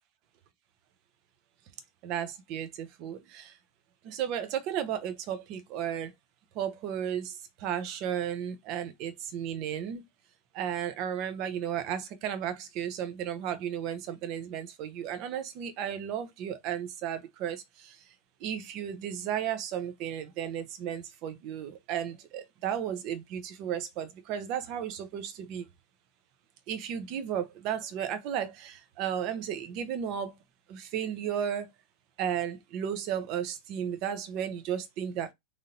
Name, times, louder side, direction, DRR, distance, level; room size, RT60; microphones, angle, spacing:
voice 1, 2.0-3.5 4.0-6.1 6.6-7.3 7.6-10.0 10.5-17.6 18.4-25.7 26.7-30.3 30.7-31.7 32.2-35.3, right 9 dB, 40° right, 1.0 m, -34 dB
3.8 x 3.3 x 2.8 m
figure-of-eight pair, 90°, 0 cm